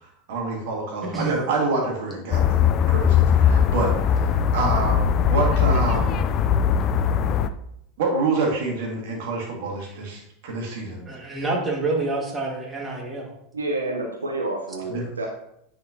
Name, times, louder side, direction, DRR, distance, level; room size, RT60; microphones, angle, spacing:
voice 1, 0.3-6.2 8.0-11.0 14.9-15.1, right 3 dB, 60° right, -1 dB, 2.1 m, -27 dB
sound 1, 2.3-7.5, left 8 dB, 40° left, 0.4 m, -20 dB
voice 2, 11.1-13.3, right 2 dB, 15° right, -1 dB, 1.8 m, -27 dB
voice 3, 13.5-15.3, right 2 dB, 85° right, 0 dB, 0.9 m, -28 dB
9.4 x 4.4 x 2.8 m, 0.75 s
figure-of-eight pair, 85°, 0 cm